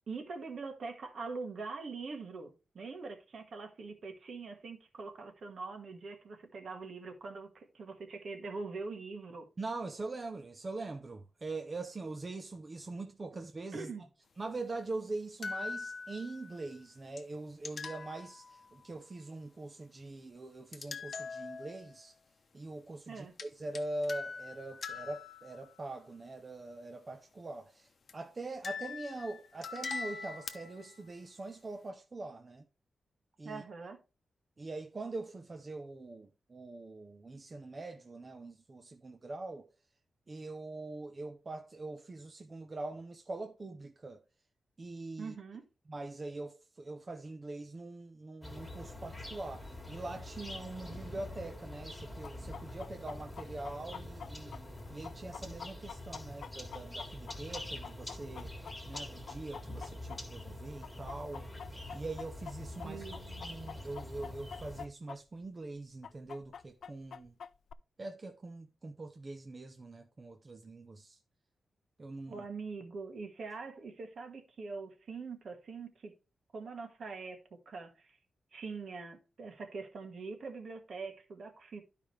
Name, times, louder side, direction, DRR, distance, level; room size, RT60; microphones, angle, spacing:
voice 1, 0.1-9.5 13.7-14.0 23.1-23.3 33.4-34.0 45.2-45.7 62.8-63.2 72.3-76.1 76.5-78.2 78.5-81.8, right 4 dB, 55° right, 1.5 m, -43 dB
voice 2, 9.6-13.9 14.4-22.1 22.5-32.7 33.4-33.6 34.6-39.7 40.3-44.2 44.8-45.3 45.9-58.5 58.9-61.5 61.9-63.0 63.4-67.3 68.0-71.2 72.0-72.4, right 2 dB, 25° right, 0.6 m, -43 dB
sound 1, 15.4-16.7 17.2-17.3 17.6-18.8 20.7-22.0 23.4-23.5 23.7-25.8 28.1-28.2 28.6-31.0, left 4 dB, 45° left, 0.8 m, -42 dB
sound 2, 48.4-64.9, left 1 dB, 5° left, 1.8 m, -45 dB
Chicken rooster, 52.2-60.5 60.8-65.2 65.4-65.5 66.0-67.7, left 7 dB, 70° left, 0.3 m, -46 dB
12.0 x 5.0 x 3.2 m
wide cardioid pair, 155°, 0 cm